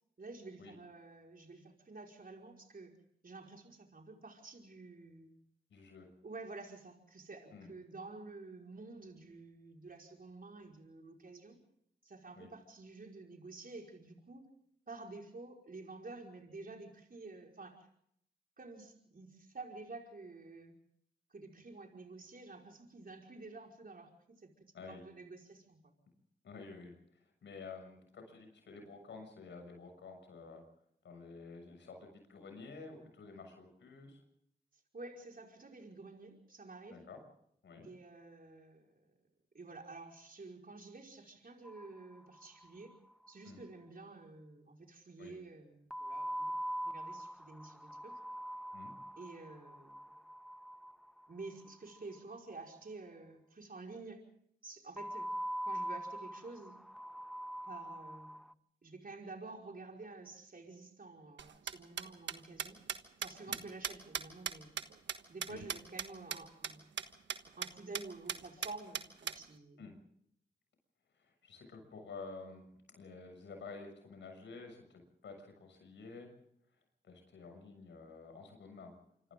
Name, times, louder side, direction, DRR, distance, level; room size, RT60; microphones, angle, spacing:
voice 1, 0.2-3.0 3.2-5.3 6.2-11.6 12.0-14.5 14.9-17.9 18.6-20.7 21.3-24.5 24.9-25.9 34.7-37.1 37.8-39.2 39.5-43.0 43.3-48.2 49.2-50.2 51.3-54.3 54.6-55.3 55.6-56.8 57.6-58.4 58.8-62.8 63.2-64.8 65.3-66.9 67.6-69.9, right 3 dB, 50° right, 1 dB, 5.1 m, -50 dB
voice 2, 5.7-6.1 7.5-7.7 12.3-12.5 24.7-25.0 26.4-30.6 31.0-34.2 36.9-37.2 37.6-37.9 43.4-43.6 45.2-45.3 48.7-48.9 63.5-63.6 65.5-65.6 69.8-69.9 71.1-76.3 77.0-78.9, left 4 dB, 85° left, 4 dB, 6.8 m, -51 dB
sound 1, 41.6-42.6 42.9-43.0 43.2-43.3 45.9-52.0 55.0-58.5, equal, ahead, 0.9 m, -42 dB
sound 2, 61.4-66.1 66.3-66.4 66.6-66.7 67.0-67.1 67.3-67.7 67.9-68.0 68.3-69.4, right 7 dB, 80° right, 1.4 m, -38 dB
27.0 x 26.0 x 3.8 m, 0.72 s
cardioid pair, 45°, 18 cm